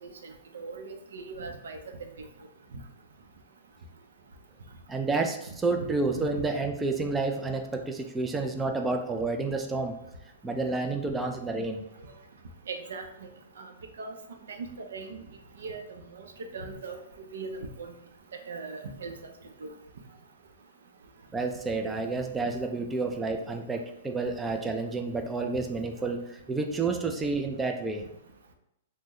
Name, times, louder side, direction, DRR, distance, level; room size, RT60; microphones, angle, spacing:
voice 1, 0.5-2.1 2.7-2.8 6.1-6.3 12.7-13.0 13.6-13.7 14.0-14.1 14.5-14.7 14.9-15.2 15.6-15.8 16.1-16.2 16.5-17.0 17.3-17.9 18.5-19.1 19.6-19.7, right 4 dB, 85° right, 4 dB, 0.5 m, -39 dB
voice 2, 4.9-10.0 10.4-11.8 21.3-28.0, right 3 dB, 10° right, 3 dB, 0.3 m, -30 dB
2.9 x 2.1 x 3.6 m, 0.83 s
hypercardioid pair, 140°, 0 cm